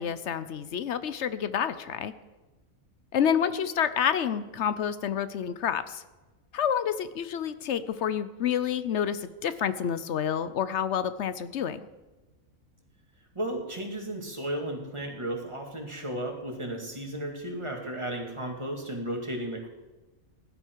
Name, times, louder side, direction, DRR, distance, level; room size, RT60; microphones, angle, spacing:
voice 1, 0.0-2.1 3.1-6.0 6.5-11.8, left 8 dB, 60° left, 13 dB, 0.9 m, -28 dB
voice 2, 13.3-19.7, right 1 dB, 20° right, 1 dB, 2.2 m, -34 dB
16.5 x 11.5 x 4.6 m, 1.2 s
omnidirectional pair, 1.4 m